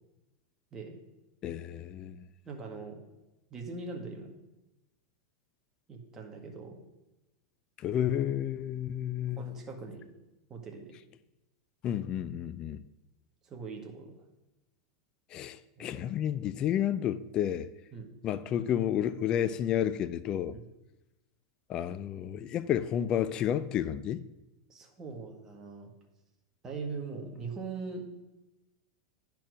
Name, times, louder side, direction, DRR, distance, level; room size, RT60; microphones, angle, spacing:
voice 1, 1.4-2.3 7.8-9.6 11.8-12.8 15.3-17.7 18.2-20.6 21.7-24.3, left 10 dB, 35° left, 0.4 m, -31 dB
voice 2, 2.5-3.0 3.5-4.3 5.9-6.8 9.4-10.1 10.5-10.9 13.4-14.1 15.8-16.0 17.9-18.1 20.5-20.7 24.7-25.9 26.6-28.1, right 4 dB, 25° right, 1.8 m, -41 dB
10.5 x 4.5 x 6.2 m
supercardioid pair, 130°, 2 cm